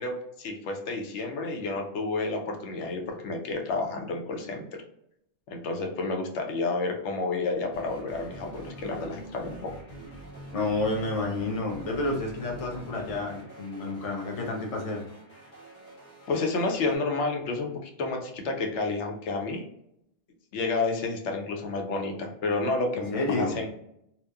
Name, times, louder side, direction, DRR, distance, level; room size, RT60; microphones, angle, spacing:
voice 1, 0.0-4.8 5.5-9.7 16.3-19.6 20.5-23.7, left 3 dB, 90° left, 2 dB, 0.9 m, -30 dB
sound 1, 7.7-17.0, right 1 dB, 25° left, 1.4 m, -46 dB
voice 2, 10.5-15.1 23.1-23.6, left 2 dB, 40° left, 0 dB, 0.6 m, -30 dB
2.9 x 2.0 x 2.2 m, 0.76 s
omnidirectional pair, 1.2 m